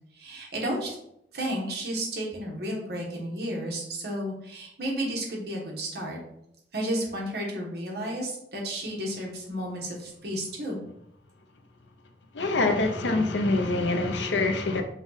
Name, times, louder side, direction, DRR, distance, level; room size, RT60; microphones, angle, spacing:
voice 1, 0.2-0.9 1.3-6.2 6.7-10.8, right 1 dB, 65° right, 1.3 m, -32 dB
voice 2, 12.3-14.8, left 2 dB, 90° left, 0.7 m, -25 dB
5.4 x 2.4 x 4.0 m
head